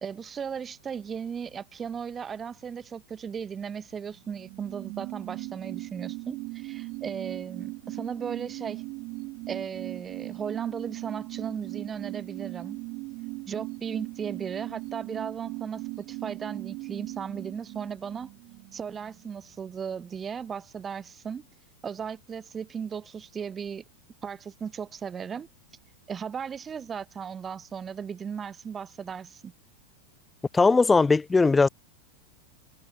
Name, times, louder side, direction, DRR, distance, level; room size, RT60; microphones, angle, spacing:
voice 1, 0.0-8.8 9.5-12.8 13.5-18.3 18.7-21.5 21.8-23.8 24.2-25.5 26.1-29.5, right 7 dB, 20° right, 1.4 m, -36 dB
sound 1, 4.2-19.3 19.6-19.7, right 25 dB, 40° right, 5.2 m, -39 dB
voice 2, 30.5-31.7, left 4 dB, 10° left, 0.8 m, -19 dB
figure-of-eight pair, 90°, 0 cm